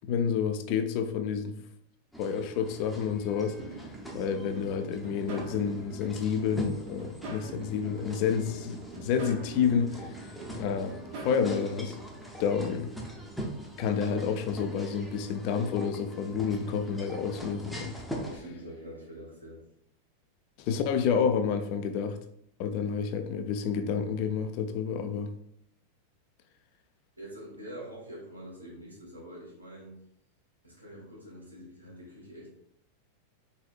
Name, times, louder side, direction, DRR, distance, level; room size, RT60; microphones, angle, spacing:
voice 1, 0.1-1.5 2.2-3.6 4.1-10.1 10.6-12.0 12.4-12.9 13.8-17.9 20.6-22.2 22.6-25.3, left 7 dB, 45° left, 8 dB, 0.5 m, -29 dB
sound 1, 2.1-18.4, equal, ahead, 0.7 m, -42 dB
sound 2, 3.6-11.4, right 3 dB, 50° right, 0.9 m, -44 dB
voice 2, 18.1-19.6 27.2-30.0 30.6-32.5, equal, 85° right, -5 dB, 1.7 m, -45 dB
4.1 x 4.0 x 2.4 m, 0.73 s
figure-of-eight pair, 90°, 0 cm